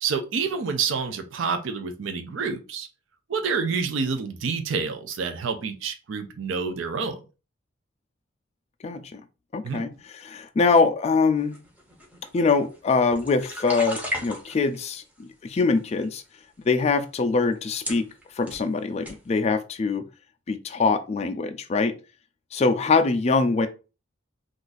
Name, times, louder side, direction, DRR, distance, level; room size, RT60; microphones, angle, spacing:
voice 1, 0.0-2.9 3.3-7.2 9.6-9.8, right 5 dB, 70° right, 0.4 m, -28 dB
voice 2, 8.8-9.2 9.5-11.6 12.3-15.0 15.4-16.2 16.6-18.1 18.4-20.0 20.5-21.9 22.5-23.7, left 4 dB, 35° left, 0.3 m, -23 dB
sound 1, 11.5-14.8 15.5-16.0 16.8-16.9 17.5-17.6 17.8-18.7 19.0-19.2, left 1 dB, 10° right, 0.7 m, -35 dB
2.5 x 2.4 x 3.9 m
head